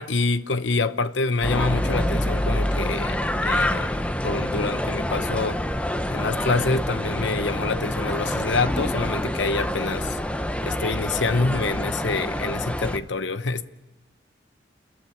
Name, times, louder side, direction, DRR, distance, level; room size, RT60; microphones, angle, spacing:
voice 1, 0.0-5.6 6.1-10.2 10.6-13.7, left 3 dB, 85° left, 0.9 m, -26 dB
sound 1, 1.4-13.0, left 1 dB, 5° left, 0.8 m, -26 dB
29.5 x 14.5 x 9.7 m
head